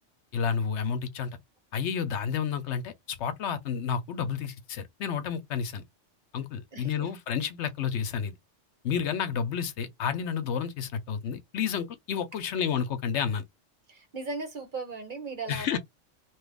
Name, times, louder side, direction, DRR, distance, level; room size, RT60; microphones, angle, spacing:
voice 1, 0.3-1.3 1.7-5.8 6.3-8.3 8.8-13.4 15.5-15.8, left 7 dB, 70° left, 0.9 m, -30 dB
voice 2, 6.7-7.1 13.9-15.8, right 3 dB, 45° right, 1.1 m, -37 dB
3.0 x 2.3 x 3.3 m
omnidirectional pair, 1.2 m